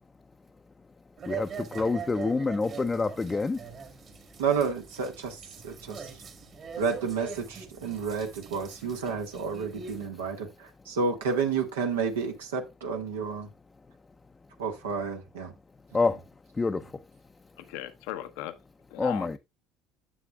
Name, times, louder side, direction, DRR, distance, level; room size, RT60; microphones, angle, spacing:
sound 1, 1.2-10.1, right 6 dB, 45° right, 1.8 m, -42 dB
voice 1, 1.3-3.7 15.9-17.0 19.0-19.4, left 3 dB, 20° left, 0.5 m, -28 dB
voice 2, 4.4-6.1 6.8-13.5 14.6-15.5, right 5 dB, 90° right, 1.4 m, -31 dB
voice 3, 17.6-18.5 18.9-19.4, left 13 dB, 75° left, 0.7 m, -37 dB
10.0 x 6.8 x 2.3 m
hypercardioid pair, 75°, 0 cm